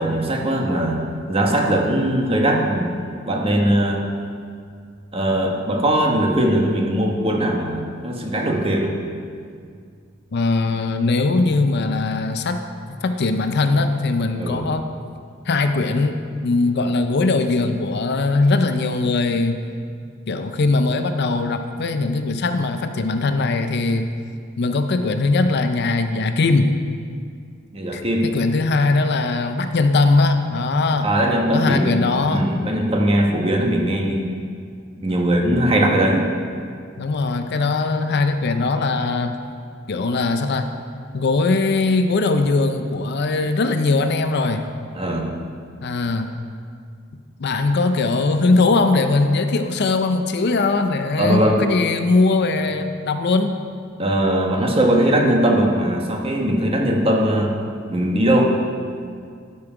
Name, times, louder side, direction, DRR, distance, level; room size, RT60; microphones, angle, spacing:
voice 1, 0.0-3.0 3.3-4.0 5.1-8.9 14.4-14.7 27.7-28.3 31.0-34.3 35.0-36.3 44.9-45.3 51.2-51.6 54.0-57.5 57.9-58.4, right 1 dB, 30° right, 0 dB, 1.1 m, -20 dB
voice 2, 10.3-14.9 15.5-19.6 20.3-24.1 24.6-26.7 27.9-31.1 31.5-32.5 37.0-39.4 39.9-40.7 41.1-44.6 45.8-46.3 47.4-53.5, left 3 dB, 55° left, 8 dB, 0.5 m, -20 dB
12.5 x 5.5 x 4.9 m, 2.2 s
head